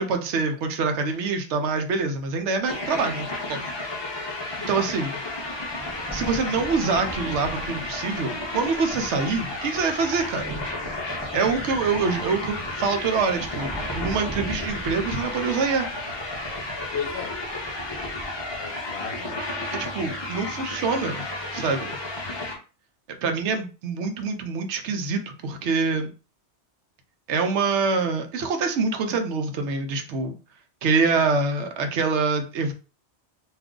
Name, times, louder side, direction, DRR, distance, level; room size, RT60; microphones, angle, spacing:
voice 1, 0.0-3.7 4.7-5.2 6.1-10.6 11.3-15.9 19.7-21.2 21.5-22.0 23.2-26.1 27.3-30.3 30.8-32.7, right 4 dB, 80° right, 0.9 m, -25 dB
sound 1, 2.0-2.1 2.8-2.9 4.1-4.2 4.6-18.6, right 1 dB, 20° right, 0.4 m, -41 dB
sound 2, 2.7-22.6, left 2 dB, 30° left, 0.6 m, -32 dB
voice 2, 15.6-16.0 16.9-17.4 18.6-19.6, left 6 dB, 70° left, 0.9 m, -36 dB
2.5 x 2.4 x 3.6 m
omnidirectional pair, 1.2 m